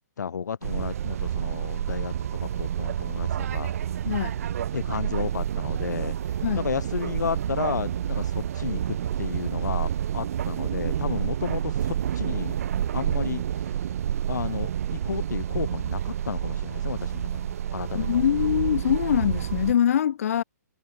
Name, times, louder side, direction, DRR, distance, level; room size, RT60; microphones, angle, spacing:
voice 1, 0.2-3.7 4.7-6.1 6.5-12.6 12.9-13.4 14.3-18.3, left 6 dB, 75° left, 6.4 m, -32 dB
sound 1, 0.6-19.7, right 10 dB, 55° right, 5.8 m, -29 dB
voice 2, 17.9-20.4, left 9 dB, 55° left, 6.5 m, -23 dB
hypercardioid pair, 155°, 10 cm